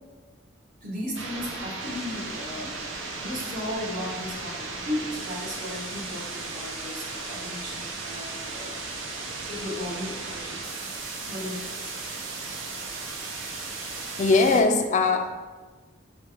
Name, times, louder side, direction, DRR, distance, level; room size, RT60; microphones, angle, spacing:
voice 1, 0.8-8.8 9.5-10.6 11.3-11.9, left 1 dB, 45° right, -4 dB, 0.9 m, -35 dB
sound 1, 1.1-14.6, right 3 dB, 75° right, 0.6 m, -36 dB
voice 2, 14.0-15.4, left 3 dB, 40° left, 6 dB, 0.4 m, -21 dB
3.3 x 3.1 x 4.7 m, 1.3 s
head